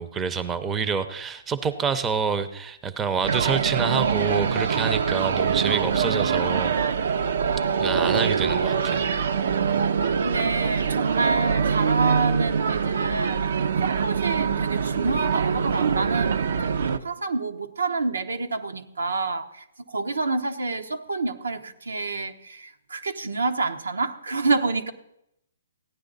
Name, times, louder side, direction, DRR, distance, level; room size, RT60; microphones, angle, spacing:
voice 1, 0.0-6.8 7.8-9.0, right 6 dB, 15° right, 0.6 m, -27 dB
sound 1, 3.2-17.0, right 6 dB, 65° right, 0.6 m, -24 dB
voice 2, 10.1-16.5 17.0-24.9, right 3 dB, 90° right, 1.0 m, -28 dB
15.5 x 9.7 x 4.0 m
hypercardioid pair, 140°, 0 cm